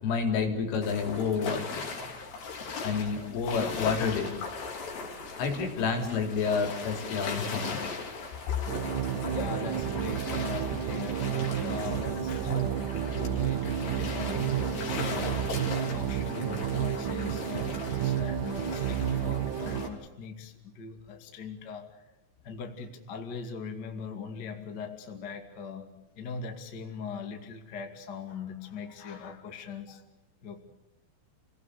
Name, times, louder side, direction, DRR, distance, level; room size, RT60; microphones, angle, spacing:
voice 1, 0.0-2.2 2.8-4.3 5.4-7.8, left 5 dB, 75° left, 4 dB, 5.8 m, -29 dB
sound 1, 0.8-19.9, left 4 dB, 55° left, 5.2 m, -39 dB
voice 2, 8.3-8.7 9.2-21.9 22.4-30.0 30.4-30.6, left 5 dB, 40° left, 4 dB, 1.5 m, -40 dB
sound 2, 8.7-19.9, right 9 dB, 75° right, 1.9 m, -31 dB
29.5 x 18.5 x 6.7 m, 1.0 s
omnidirectional pair, 5.7 m